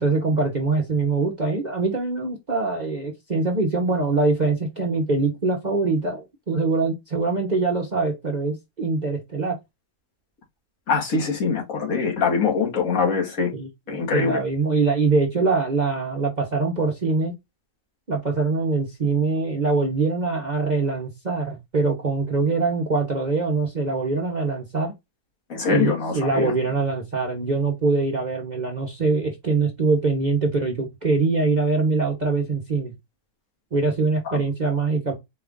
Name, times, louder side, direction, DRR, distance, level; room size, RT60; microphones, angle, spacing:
voice 1, 0.0-9.6 13.5-13.7 14.1-17.3 18.1-24.9 25.6-32.9 33.7-35.2, right 3 dB, 40° right, 0.7 m, -23 dB
voice 2, 10.9-13.5 13.9-14.4 25.5-26.5 34.2-34.4, left 5 dB, 65° left, 1.7 m, -23 dB
4.5 x 2.4 x 3.4 m
omnidirectional pair, 1.6 m